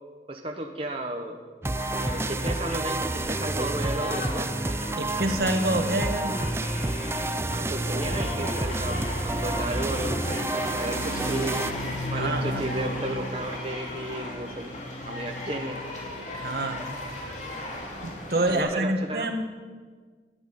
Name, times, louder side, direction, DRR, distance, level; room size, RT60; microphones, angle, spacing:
voice 1, 0.3-1.4 2.0-4.5 7.5-11.6 11.9-14.7 15.0-15.8 18.5-19.3, right 1 dB, 30° right, 2 dB, 1.1 m, -33 dB
sound 1, 1.6-11.7, right 2 dB, 15° right, 0.4 m, -29 dB
sound 2, 1.7-18.6, left 1 dB, 40° left, 2.9 m, -35 dB
voice 2, 5.0-6.4 12.1-12.6 16.3-16.8 18.0-19.4, right 1 dB, 60° right, 6 dB, 1.4 m, -27 dB
12.5 x 11.0 x 9.3 m, 1.5 s
head